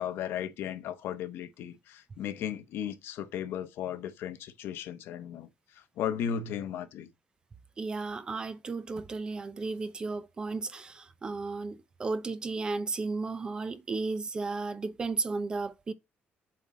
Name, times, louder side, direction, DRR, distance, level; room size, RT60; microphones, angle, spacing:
voice 1, 0.0-7.1, left 9 dB, 70° left, 0.9 m, -36 dB
voice 2, 7.8-15.9, right 3 dB, 20° right, 0.6 m, -34 dB
7.6 x 3.8 x 4.1 m
cardioid pair, 175°, 4 cm